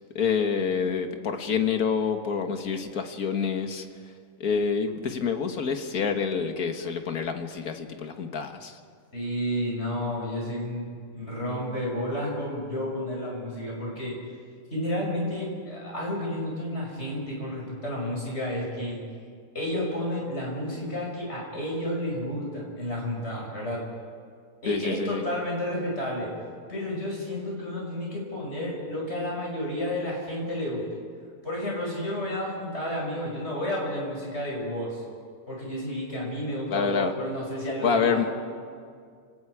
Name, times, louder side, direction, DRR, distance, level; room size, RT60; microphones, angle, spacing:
voice 1, 0.2-3.9 4.4-8.8 24.7-25.2 36.7-37.1 37.8-38.3, left 6 dB, 85° left, 6 dB, 1.8 m, -27 dB
voice 2, 9.1-14.1 14.7-19.0 19.5-23.8 24.6-26.3 26.7-30.8 31.4-35.0 35.5-38.3, left 1 dB, 45° left, -3 dB, 6.4 m, -31 dB
29.5 x 18.5 x 4.8 m, 2.2 s
omnidirectional pair, 1.5 m